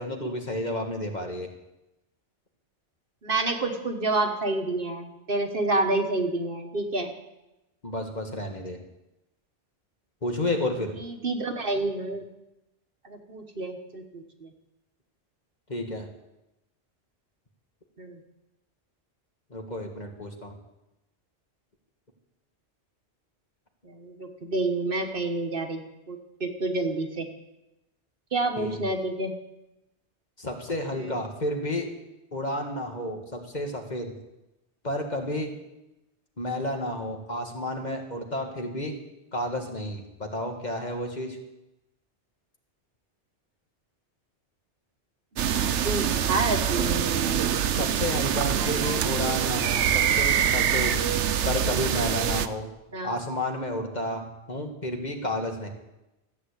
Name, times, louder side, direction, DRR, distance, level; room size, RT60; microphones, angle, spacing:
voice 1, 0.0-1.5 7.8-8.8 10.2-10.9 15.7-16.1 19.5-20.5 28.6-28.8 30.4-31.9 32.3-34.1 34.8-35.5 36.4-39.0 39.3-41.4 47.7-51.0 51.5-52.7 53.0-55.7, left 1 dB, 40° left, 3 dB, 1.9 m, -31 dB
voice 2, 3.2-7.1 11.0-12.2 13.0-14.5 18.0-18.2 23.8-25.8 26.1-27.3 28.3-29.3 31.0-31.1 45.5-47.6 48.6-49.3 52.9-53.1, right 2 dB, 50° right, 5 dB, 1.5 m, -29 dB
sound 1, 45.4-52.5, right 9 dB, 85° right, 1.0 m, -25 dB
14.5 x 8.4 x 8.3 m, 0.95 s
omnidirectional pair, 1.2 m